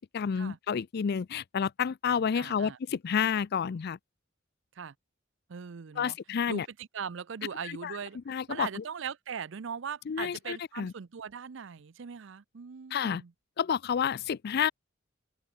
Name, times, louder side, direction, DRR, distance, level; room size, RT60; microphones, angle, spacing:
voice 1, 0.1-4.0 6.0-6.7 7.6-8.0 8.3-8.8 10.1-10.9 12.9-13.2 13.6-14.7, left 7 dB, 55° left, 0.4 m, -30 dB
voice 2, 2.4-2.8 4.8-4.9 5.5-6.2 6.5-8.2 8.5-13.3, right 6 dB, 70° right, 0.5 m, -40 dB
open air
head